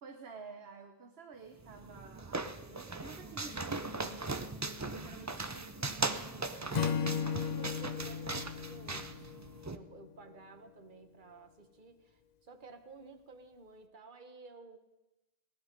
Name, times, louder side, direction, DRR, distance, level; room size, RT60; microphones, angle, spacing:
voice 1, 0.0-4.3 4.8-7.2, right 5 dB, 75° right, 6 dB, 1.2 m, -51 dB
sound 1, 1.6-9.8, right 3 dB, 25° right, 0.4 m, -39 dB
Acoustic guitar / Strum, 6.7-10.1, left 7 dB, 50° left, 0.6 m, -36 dB
voice 2, 7.4-9.3 9.7-14.8, right 3 dB, 50° right, 8 dB, 1.3 m, -53 dB
18.5 x 11.0 x 5.2 m, 1.0 s
omnidirectional pair, 1.1 m